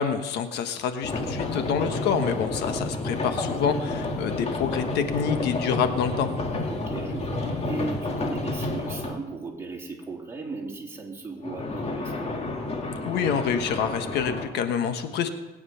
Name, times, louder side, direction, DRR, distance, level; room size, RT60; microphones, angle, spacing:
voice 1, 0.0-6.3 13.0-15.3, left 7 dB, 80° left, 8 dB, 1.3 m, -27 dB
sound 1, 1.0-9.2 11.4-14.5, left 2 dB, 40° left, 2.1 m, -30 dB
voice 2, 6.7-12.4, right 3 dB, 15° right, -1 dB, 3.4 m, -36 dB
20.5 x 9.4 x 5.7 m, 1.1 s
cardioid pair, 110°, 17 cm